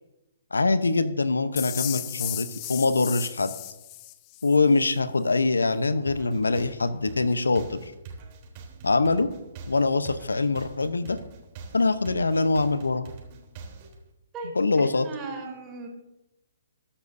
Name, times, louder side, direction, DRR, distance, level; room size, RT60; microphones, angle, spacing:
voice 1, 0.5-3.5 4.4-7.8 8.8-9.3 9.7-11.2 11.7-13.0 14.6-15.1, left 3 dB, 80° left, 13 dB, 0.8 m, -23 dB
sound 1, 1.6-4.6, left 16 dB, 30° left, 0.7 m, -35 dB
sound 2, 6.1-14.0, right 4 dB, 35° right, 3.5 m, -44 dB
voice 2, 14.3-15.9, right 3 dB, 20° right, 0 dB, 4.1 m, -38 dB
21.5 x 10.0 x 2.7 m, 1.0 s
figure-of-eight pair, 130°, 0 cm